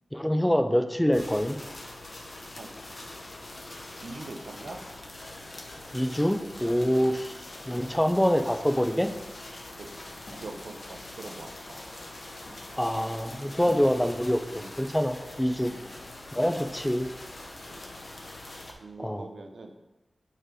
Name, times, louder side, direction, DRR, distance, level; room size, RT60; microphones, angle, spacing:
voice 1, 0.1-1.6 5.9-7.4 7.7-9.1 12.8-14.4 14.8-15.7 16.3-17.1 19.0-19.2, equal, 5° left, 7 dB, 0.4 m, -25 dB
sound 1, 1.1-18.7, left 1 dB, 40° left, 0.7 m, -43 dB
voice 2, 4.0-4.8 9.8-9.9 10.4-11.8 12.3-12.7 13.2-13.4 14.5-14.8 15.6-15.9 17.6-17.9 18.2-18.4 18.7-19.7, right 3 dB, 80° right, 5 dB, 0.6 m, -44 dB
sound 2, 10.0-12.7 13.1-14.0, left 1 dB, 65° left, 1.4 m, -52 dB
5.4 x 3.8 x 4.9 m, 1.0 s
wide cardioid pair, 95°, 0 cm